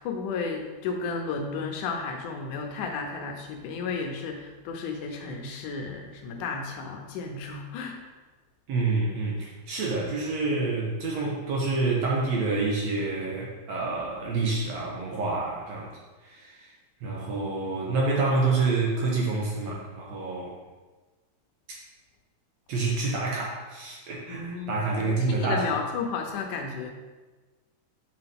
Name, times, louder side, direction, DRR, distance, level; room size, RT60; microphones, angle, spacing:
voice 1, 0.0-8.0 24.3-26.9, left 4 dB, 75° left, 3 dB, 2.1 m, -33 dB
voice 2, 8.7-15.9 16.2-16.7 17.0-20.5 22.7-25.7, right 3 dB, 65° right, -3 dB, 2.0 m, -28 dB
6.8 x 5.6 x 3.4 m, 1.3 s
omnidirectional pair, 3.8 m